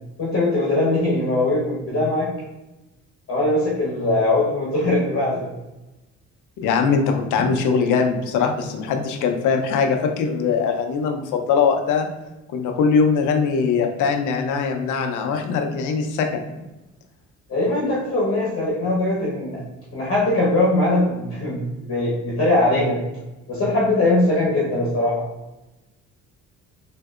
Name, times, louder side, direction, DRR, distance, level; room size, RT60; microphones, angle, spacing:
voice 1, 0.2-2.3 3.3-5.5 7.4-7.5 17.5-19.6 19.9-23.0 23.5-25.2, left 2 dB, 50° left, -6 dB, 1.0 m, -21 dB
voice 2, 6.6-12.1 12.5-16.6, left 5 dB, 85° left, 4 dB, 0.5 m, -21 dB
3.5 x 2.6 x 2.3 m, 1.0 s
cardioid pair, 90°, 30 cm